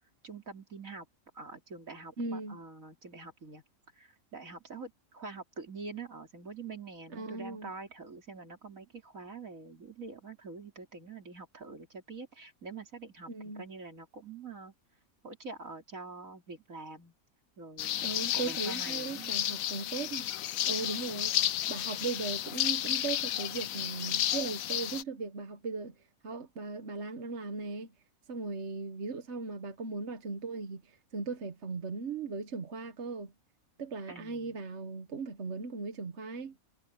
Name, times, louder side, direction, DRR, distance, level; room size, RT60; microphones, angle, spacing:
voice 1, 0.2-1.1 1.3-3.6 4.0-14.7 15.2-17.1 17.6-19.3 34.1-34.5, right 4 dB, 70° right, 3.6 m, -45 dB
voice 2, 2.2-2.6 7.1-7.7 13.3-13.6 18.0-20.3 20.7-21.4 21.7-25.9 26.2-27.9 28.3-33.3 33.8-36.6, right 4 dB, 55° right, 1.5 m, -38 dB
sound 1, 17.8-25.0, left 12 dB, 70° left, 1.1 m, -32 dB
omnidirectional pair, 1.5 m